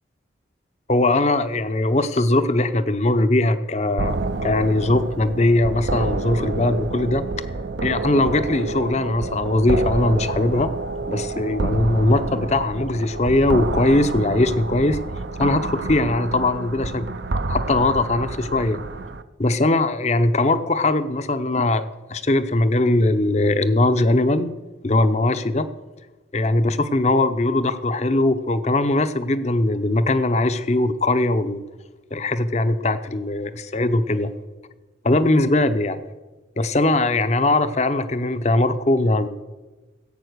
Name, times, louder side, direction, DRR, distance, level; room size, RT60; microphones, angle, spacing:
voice 1, 0.9-4.2 4.4-7.2 7.8-10.7 11.1-15.0 15.4-17.1 17.5-18.8 19.4-24.5 24.8-25.7 26.3-31.6 32.1-34.3 35.0-36.0 36.6-39.3, left 2 dB, 35° left, 11 dB, 0.7 m, -20 dB
sound 1, 4.0-19.2, right 3 dB, 65° right, 0.7 m, -28 dB
15.5 x 8.8 x 6.6 m, 1.2 s
head